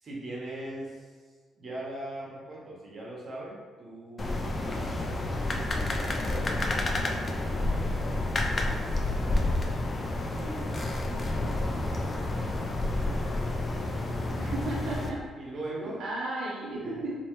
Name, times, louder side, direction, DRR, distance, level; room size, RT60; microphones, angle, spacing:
voice 1, 0.0-1.1 1.6-5.3 5.9-8.0 8.5-9.5 10.4-10.7 11.7-14.4 15.4-16.0 16.8-16.9, right 1 dB, 45° right, -4 dB, 1.1 m, -42 dB
sound 1, 4.2-15.1, left 2 dB, 35° left, 0.5 m, -29 dB
voice 2, 11.1-11.5 14.4-15.2 16.0-17.2, right 2 dB, 80° right, -6 dB, 0.7 m, -35 dB
3.2 x 2.9 x 3.1 m, 1.5 s
cardioid pair, 90°, 0 cm